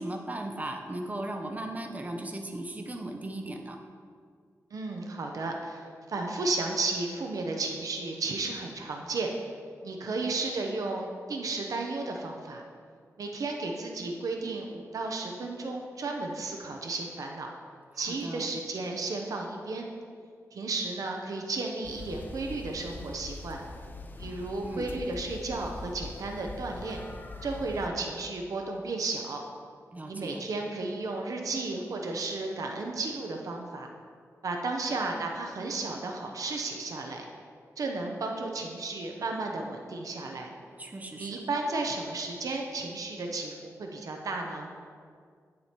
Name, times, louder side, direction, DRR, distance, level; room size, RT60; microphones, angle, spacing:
voice 1, 0.0-3.8 17.9-18.5 24.6-24.9 29.9-30.4 40.8-41.4, right 1 dB, 25° right, 3 dB, 0.8 m, -37 dB
voice 2, 4.7-9.3 9.8-12.6 13.2-17.5 18.0-19.9 20.5-23.6 24.2-27.0 27.4-29.4 30.1-33.9 34.4-37.3 37.8-40.5 41.2-44.7, right 3 dB, 75° right, 2 dB, 0.7 m, -33 dB
sound 1, 21.8-27.9, left 2 dB, 30° left, 0.6 m, -42 dB
8.7 x 7.5 x 2.9 m, 2.1 s
cardioid pair, 75°, 6 cm